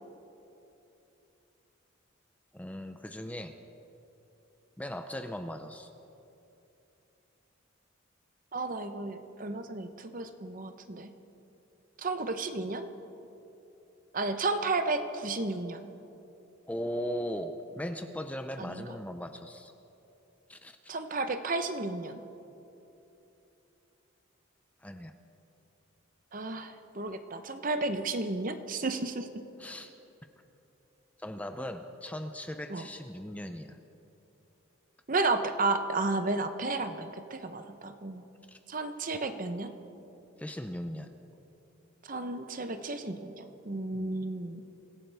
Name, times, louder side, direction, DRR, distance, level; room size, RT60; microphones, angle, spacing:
voice 1, 2.5-3.6 4.8-5.9 16.7-19.7 20.5-20.9 24.8-25.1 29.6-29.9 31.2-33.8 38.5-38.6 40.4-41.1 43.9-44.1, equal, 5° left, 7 dB, 0.5 m, -38 dB
voice 2, 8.5-11.1 12.0-12.9 14.1-15.9 18.6-18.8 20.9-22.2 26.3-29.4 32.7-32.9 35.1-38.2 38.7-39.7 42.0-44.6, right 3 dB, 40° right, 8 dB, 0.8 m, -32 dB
26.0 x 16.0 x 3.5 m, 2.9 s
head